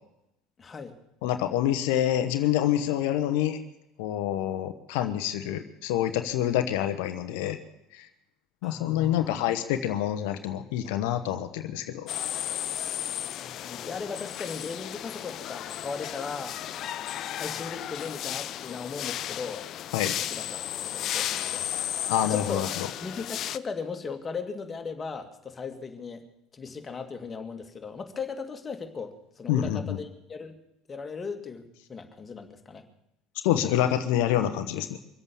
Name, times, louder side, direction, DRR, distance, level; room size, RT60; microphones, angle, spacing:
voice 1, 0.6-1.0 8.6-9.3 13.2-16.6 17.4-19.7 20.0-20.5 20.9-21.7 22.2-22.7 23.0-26.2 26.5-30.5 30.9-32.8, left 5 dB, 30° left, 6 dB, 2.4 m, -37 dB
voice 2, 1.2-3.6 4.0-7.6 7.9-8.1 8.6-12.1 19.9-20.1 22.1-22.9 29.5-30.0 33.4-35.0, left 11 dB, 75° left, 9 dB, 1.0 m, -27 dB
sound 1, 12.1-23.6, left 11 dB, 55° left, 0.6 m, -34 dB
24.5 x 8.2 x 7.1 m, 0.86 s
hypercardioid pair, 75°, 0 cm